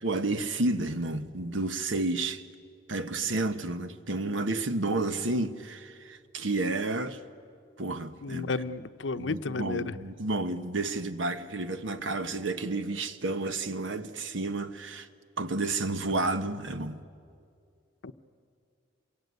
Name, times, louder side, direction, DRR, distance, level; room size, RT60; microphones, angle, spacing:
voice 1, 0.0-2.4 2.9-7.2 7.8-8.5 9.2-15.1 15.4-17.0, right 2 dB, 85° right, 1.2 m, -31 dB
voice 2, 8.2-10.0 18.0-18.1, left 3 dB, 75° left, 0.8 m, -32 dB
27.0 x 22.5 x 9.6 m
head